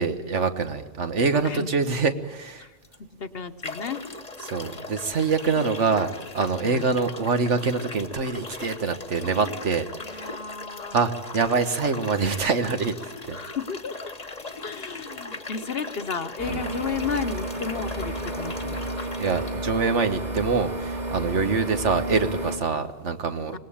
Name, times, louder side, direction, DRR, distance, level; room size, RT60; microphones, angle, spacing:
voice 1, 0.0-2.7 4.4-6.1 6.3-10.3 10.9-13.0 13.2-13.4 16.5-16.6 19.2-23.6, right 4 dB, 70° right, 8 dB, 1.7 m, -25 dB
voice 2, 1.3-1.7 2.6-2.8 3.2-4.1 6.6-7.0 10.0-11.0 13.3-14.1 14.6-18.9 23.5-23.6, left 6 dB, 55° left, 10 dB, 1.2 m, -33 dB
sound 1, 2.8-3.0 3.6-19.5, left 2 dB, 35° left, 1.3 m, -39 dB
sound 2, 16.4-22.6, right 1 dB, 35° right, 2.6 m, -32 dB
25.5 x 19.5 x 8.7 m, 1.1 s
omnidirectional pair, 1.2 m